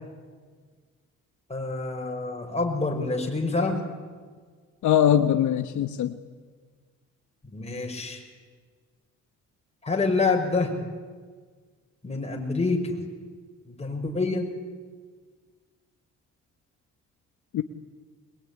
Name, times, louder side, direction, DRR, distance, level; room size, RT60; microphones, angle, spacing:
voice 1, 1.5-3.8 7.4-8.2 9.8-10.7 12.0-13.0 13.7-14.5, left 3 dB, 20° left, 2 dB, 5.8 m, -27 dB
voice 2, 4.8-6.2 17.5-17.6, left 10 dB, 75° left, 9 dB, 1.1 m, -21 dB
23.5 x 21.5 x 10.0 m, 1.5 s
cardioid pair, 90°, 30 cm